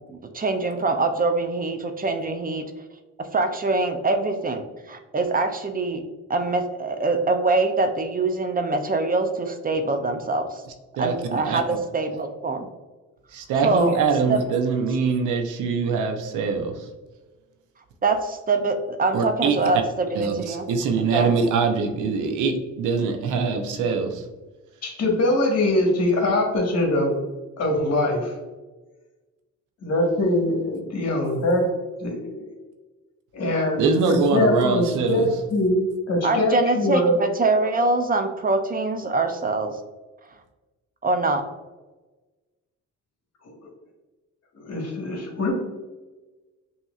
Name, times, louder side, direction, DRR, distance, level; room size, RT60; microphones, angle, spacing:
voice 1, 0.1-2.7 3.2-6.0 6.3-10.6 11.0-12.7 13.6-13.9 14.3-14.4 18.0-20.7 21.1-21.3 36.2-39.8 41.0-41.4, right 3 dB, 30° right, 6 dB, 0.5 m, -24 dB
voice 2, 11.0-11.6 13.3-16.9 19.1-19.6 20.1-24.2 33.8-35.3, right 5 dB, 85° right, 4 dB, 0.7 m, -23 dB
voice 3, 24.8-27.2 27.6-28.3 29.8-31.6 32.0-32.5 33.3-37.2 43.4-43.5 44.5-45.6, left 1 dB, 55° left, 1 dB, 1.4 m, -23 dB
5.7 x 2.9 x 2.4 m, 1.2 s
cardioid pair, 90°, 30 cm